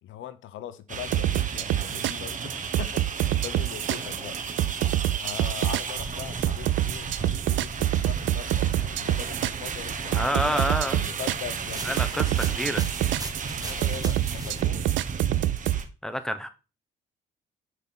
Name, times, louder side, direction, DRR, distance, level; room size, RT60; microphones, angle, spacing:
voice 1, 0.0-4.4 5.2-12.6 13.5-14.9, left 11 dB, 80° left, 0.8 m, -41 dB
sound 1, 0.9-15.8, right 5 dB, 40° right, 1.3 m, -34 dB
sound 2, 1.1-15.8, right 14 dB, 75° right, 0.5 m, -26 dB
voice 2, 10.1-11.0 11.8-12.8 16.0-16.5, equal, 5° left, 1.1 m, -28 dB
sound 3, 11.5-14.6, right 3 dB, 20° right, 1.4 m, -39 dB
6.2 x 5.3 x 6.0 m
cardioid pair, 90°, 20 cm